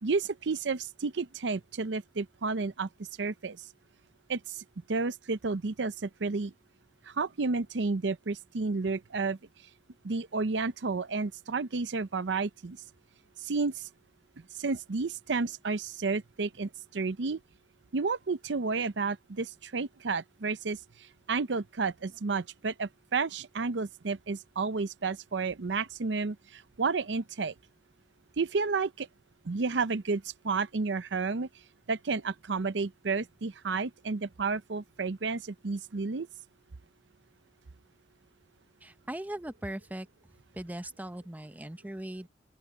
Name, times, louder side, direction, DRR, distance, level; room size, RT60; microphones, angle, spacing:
voice 1, 0.0-2.9 3.2-3.6 4.3-6.5 7.1-9.4 10.0-12.8 13.4-13.9 14.5-17.4 17.9-20.8 21.3-27.5 28.4-29.1 29.4-31.5 31.9-36.3, right 4 dB, 75° right, 0.7 m, -31 dB
voice 2, 38.8-40.1 40.5-42.3, right 1 dB, 10° right, 0.8 m, -39 dB
open air
head